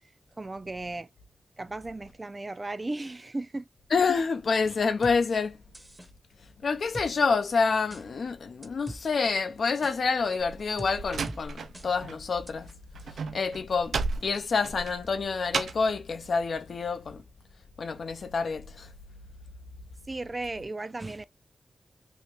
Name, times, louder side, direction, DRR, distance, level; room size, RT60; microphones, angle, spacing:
voice 1, 0.4-1.1 1.6-3.7 20.1-21.3, right 2 dB, 30° right, 0.3 m, -35 dB
voice 2, 3.9-5.5 6.6-12.7 13.3-13.9 14.2-17.2 17.8-18.9, left 4 dB, 70° left, 0.5 m, -27 dB
sound 1, 5.0-5.2 5.7-6.1 6.9-7.1 7.9-8.0 8.6-9.0 9.8-10.0 10.8-10.9 11.3-11.4 11.7-11.9 12.5-12.6, right 1 dB, 10° right, 0.7 m, -41 dB
Slam, 10.4-12.2 12.5-16.0, right 4 dB, 90° right, 0.4 m, -34 dB
2.8 x 2.5 x 3.1 m
cardioid pair, 75°, 0 cm